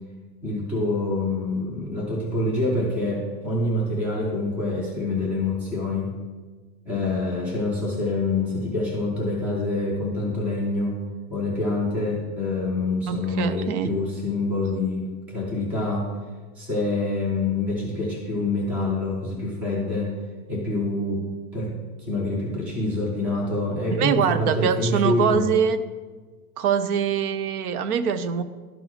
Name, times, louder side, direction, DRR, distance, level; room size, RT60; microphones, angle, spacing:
voice 1, 0.4-6.1 6.8-11.0 11.3-16.1 16.6-20.1 20.5-21.2 21.5-21.7 22.0-25.5, left 2 dB, 5° right, -2 dB, 0.3 m, -26 dB
voice 2, 13.1-13.9 24.0-25.8 26.6-28.4, right 7 dB, 85° right, 13 dB, 0.7 m, -23 dB
11.5 x 4.0 x 3.0 m, 1.3 s
supercardioid pair, 160°, 43 cm